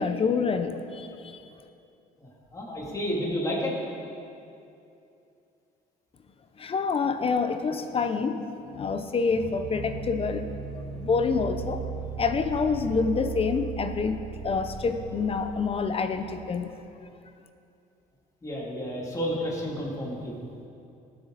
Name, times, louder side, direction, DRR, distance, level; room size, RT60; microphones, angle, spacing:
voice 1, 0.0-1.4 6.6-8.4 8.7-10.5 10.9-11.8 12.2-14.2 14.4-16.7, left 5 dB, 35° left, 8 dB, 0.7 m, -27 dB
voice 2, 2.2-3.8 18.4-20.3, equal, 20° left, -4 dB, 2.8 m, -31 dB
sound 1, 9.3-16.5, right 7 dB, 50° right, 2.0 m, -37 dB
18.5 x 7.8 x 4.1 m, 2.7 s
cardioid pair, 110°, 17 cm